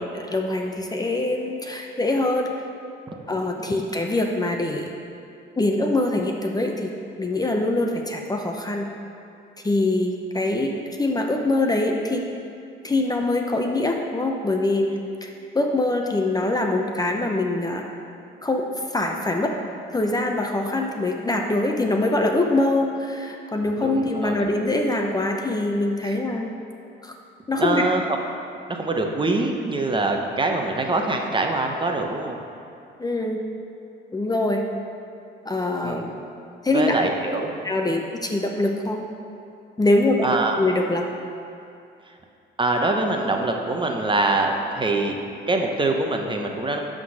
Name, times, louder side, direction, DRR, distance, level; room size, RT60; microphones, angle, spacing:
voice 1, 0.0-2.6 3.3-4.9 5.6-6.9 7.2-8.9 9.6-10.7 11.0-12.2 12.8-17.9 18.4-19.5 19.9-26.5 27.0-27.1 27.5-27.8 33.0-33.4 34.1-34.6 35.4-36.2 36.6-36.9 37.6-39.0 39.8-41.1, left 2 dB, 20° left, 2 dB, 0.7 m, -23 dB
voice 2, 23.8-24.3 26.0-26.2 27.6-28.0 28.7-32.4 35.8-36.0 36.7-37.5 40.2-40.6 42.6-45.2 45.5-46.8, right 2 dB, 25° right, 2 dB, 0.9 m, -24 dB
11.5 x 3.8 x 6.5 m, 2.5 s
cardioid pair, 90°, 20 cm